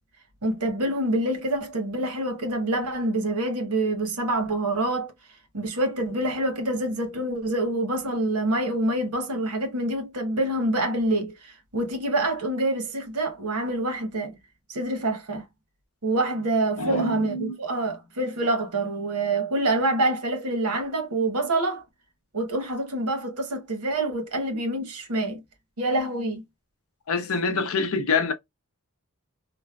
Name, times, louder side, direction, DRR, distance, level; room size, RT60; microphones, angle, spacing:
voice 1, 0.4-5.1 5.5-14.4 14.7-15.4 16.0-21.8 22.3-25.4 25.8-26.4, right 2 dB, 90° right, 1.1 m, -26 dB
voice 2, 16.8-17.6 27.1-28.3, left 4 dB, 65° left, 0.6 m, -26 dB
3.2 x 2.0 x 2.3 m
head